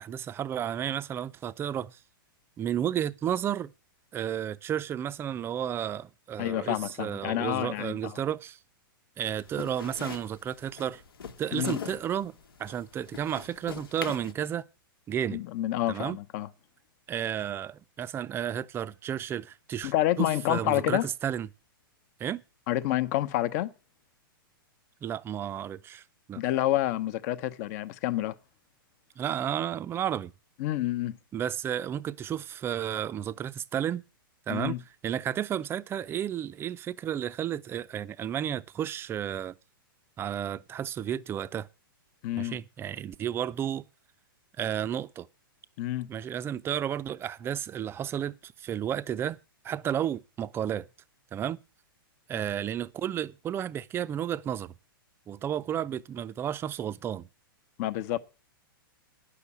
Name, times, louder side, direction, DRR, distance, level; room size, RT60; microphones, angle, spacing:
voice 1, 0.0-2.0 2.6-3.7 4.1-8.6 9.2-11.0 11.4-12.3 12.6-14.6 15.1-15.4 15.9-16.2 17.1-21.5 22.2-22.4 25.0-26.0 26.3-26.4 29.2-30.3 31.3-34.0 34.5-34.8 35.0-39.5 40.2-41.7 42.4-43.8 44.6-45.3 46.1-49.4 49.6-50.9 51.3-51.6 52.3-54.7 55.3-57.3, right 10 dB, 20° right, 0.5 m, -32 dB
voice 2, 6.4-8.2 11.5-11.8 15.3-16.5 19.8-21.1 22.7-23.7 26.4-28.3 30.6-31.2 34.5-34.8 42.2-42.6 45.8-46.1 57.8-58.2, left 14 dB, 45° left, 0.9 m, -28 dB
sound 1, 9.2-14.3, left 7 dB, 85° left, 1.3 m, -42 dB
9.8 x 6.7 x 8.4 m
hypercardioid pair, 130°, 12 cm